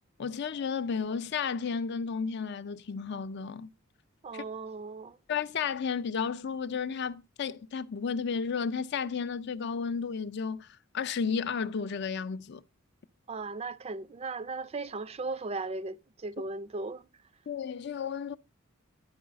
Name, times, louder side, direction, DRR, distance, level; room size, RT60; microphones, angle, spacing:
voice 1, 0.2-3.7 4.3-4.4 5.3-10.7 10.9-12.6 17.5-18.4, left 6 dB, 55° left, 0.4 m, -33 dB
voice 2, 4.2-5.2 13.3-17.1, right 3 dB, 30° right, 0.4 m, -37 dB
11.0 x 4.7 x 5.0 m
head